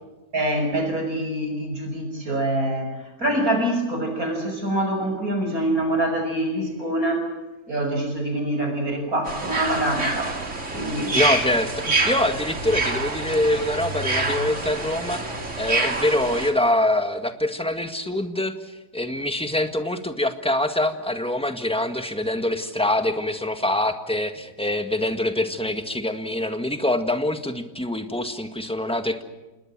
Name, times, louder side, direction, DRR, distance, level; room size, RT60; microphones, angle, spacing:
voice 1, 0.3-7.3 7.7-10.3 10.7-11.1, right 1 dB, 65° right, 4 dB, 6.8 m, -25 dB
sound 1, 9.3-16.5, right 3 dB, 50° right, 3.2 m, -27 dB
voice 2, 11.1-15.2 15.6-29.2, left 1 dB, 5° left, 6 dB, 1.7 m, -24 dB
28.0 x 20.5 x 7.6 m, 1.1 s
omnidirectional pair, 1.6 m